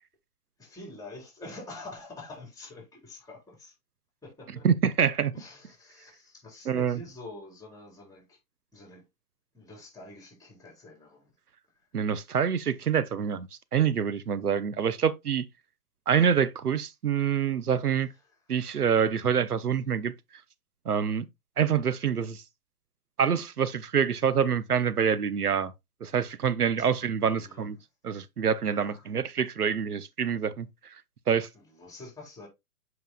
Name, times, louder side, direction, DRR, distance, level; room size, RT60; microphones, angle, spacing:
voice 1, 0.6-3.7 4.2-4.7 5.3-8.4 8.7-9.0 9.5-11.3 26.8-26.9 27.2-27.7 28.6-29.1 31.5-32.5, left 2 dB, 10° left, 4.0 m, -46 dB
voice 2, 4.6-5.3 6.7-7.0 11.9-15.4 16.1-18.1 18.5-20.1 20.9-21.2 21.6-22.4 23.2-25.7 26.0-27.8 28.0-30.7 31.3-31.5, right 7 dB, 85° right, 0.7 m, -26 dB
7.6 x 5.7 x 2.2 m
figure-of-eight pair, 115°, 44 cm